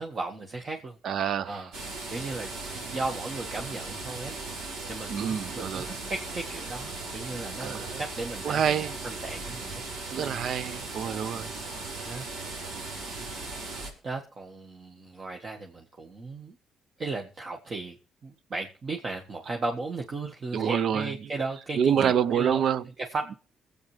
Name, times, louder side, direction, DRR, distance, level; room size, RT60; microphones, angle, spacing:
voice 1, 0.0-1.0 1.4-8.8 9.0-9.8 10.2-10.5 12.0-12.2 13.4-13.6 14.0-16.5 17.0-17.9 18.2-22.6 23.0-23.3, right 3 dB, 40° right, 1.7 m, -36 dB
voice 2, 1.0-1.6 5.1-5.9 7.6-8.0 8.4-8.9 10.1-11.5 20.5-21.1 21.8-22.8, right 8 dB, 65° right, 0.6 m, -27 dB
sound 1, 1.7-13.9, right 3 dB, 85° right, 4.3 m, -38 dB
22.0 x 8.5 x 3.3 m
cardioid pair, 90°, 0 cm